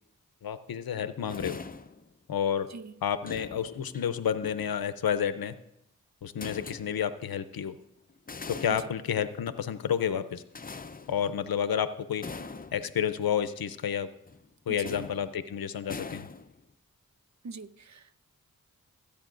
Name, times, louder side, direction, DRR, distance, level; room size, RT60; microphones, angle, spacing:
voice 1, 0.4-1.6 2.3-2.7 3.0-5.5 6.2-7.8 8.5-10.4 11.1-12.2 12.7-14.1 14.7-16.3, left 8 dB, 85° left, 11 dB, 0.6 m, -30 dB
sound 1, 1.3-2.1 3.1-4.8 6.4-7.2 8.1-9.6 10.5-11.6 12.2-13.4 14.3-14.5 14.8-15.5 15.9-16.7, left 4 dB, 25° left, 0.5 m, -43 dB
voice 2, 14.7-15.1 17.4-18.2, right 4 dB, 50° right, 14 dB, 0.6 m, -43 dB
22.5 x 8.5 x 2.5 m, 0.82 s
cardioid pair, 45°, 35 cm